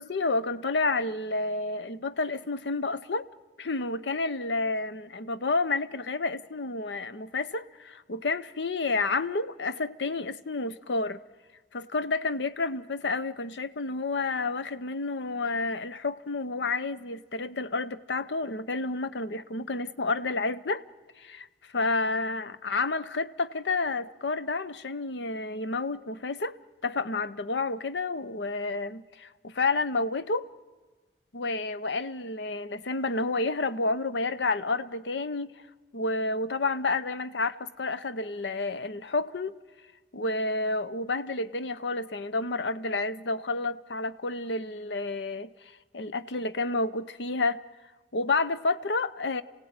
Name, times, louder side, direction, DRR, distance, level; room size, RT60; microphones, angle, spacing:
voice 1, 0.0-3.3 3.6-11.2 11.7-20.8 21.2-21.5 21.7-26.5 26.8-30.5 31.3-35.5 35.9-39.5 40.1-45.5 45.9-47.6 48.1-49.4, left 3 dB, 80° left, 0.8 m, -30 dB
27.5 x 16.5 x 9.5 m
head